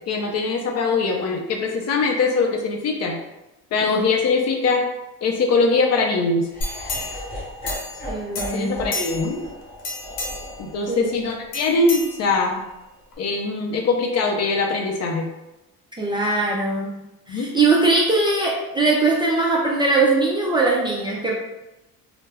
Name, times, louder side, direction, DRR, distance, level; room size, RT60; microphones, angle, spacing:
voice 1, 0.1-3.2 3.7-4.8 5.2-6.5 8.5-9.4 10.6-12.6 13.2-15.3 17.3-17.5, left 3 dB, 50° left, 2 dB, 0.5 m, -22 dB
Laughter, 6.5-12.6, left 1 dB, 25° left, 0.9 m, -37 dB
sound 1, 6.6-8.1 8.3-9.4 9.8-10.6 11.5-12.6 13.1-13.2, left 2 dB, 80° left, 0.8 m, -31 dB
voice 2, 8.1-8.9 10.9-11.1 16.0-16.9 17.3-21.3, right 3 dB, 15° right, -4 dB, 0.3 m, -21 dB
2.2 x 2.0 x 3.3 m, 0.98 s
cardioid pair, 115°, 35 cm